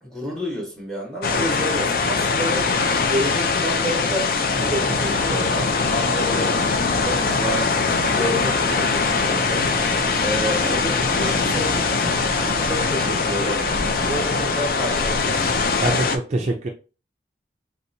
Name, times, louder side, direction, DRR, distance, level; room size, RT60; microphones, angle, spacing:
voice 1, 0.0-2.7 3.1-7.7 8.1-9.7 10.2-12.2 12.6-13.7 14.0-15.5, equal, 5° left, -2 dB, 1.2 m, -30 dB
sound 1, 1.2-16.2, left 4 dB, 55° left, 0.4 m, -22 dB
sound 2, 4.5-14.6, left 1 dB, 35° left, 0.8 m, -31 dB
voice 2, 15.8-16.7, right 2 dB, 40° right, 2 dB, 0.4 m, -24 dB
3.3 x 2.9 x 2.6 m, 0.34 s
head